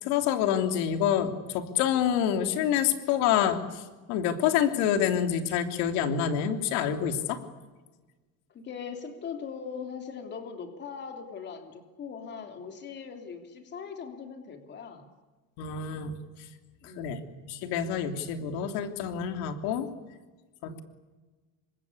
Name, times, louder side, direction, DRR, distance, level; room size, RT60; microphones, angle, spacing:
voice 1, 0.0-7.4 15.6-16.2 17.0-19.9 20.6-20.8, left 9 dB, 90° left, 6 dB, 3.1 m, -27 dB
voice 2, 8.5-15.1 16.8-17.2 20.6-20.8, left 6 dB, 30° left, 5 dB, 3.2 m, -40 dB
28.5 x 25.0 x 8.4 m, 1.2 s
cardioid pair, 180°, 37 cm